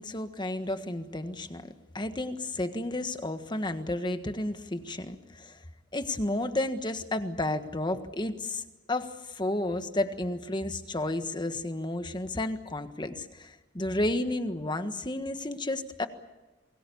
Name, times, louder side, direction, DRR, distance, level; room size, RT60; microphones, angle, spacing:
voice 1, 0.0-5.6 5.9-8.6 8.9-16.1, left 1 dB, 25° left, 9 dB, 1.5 m, -32 dB
28.5 x 22.0 x 7.1 m, 1.1 s
head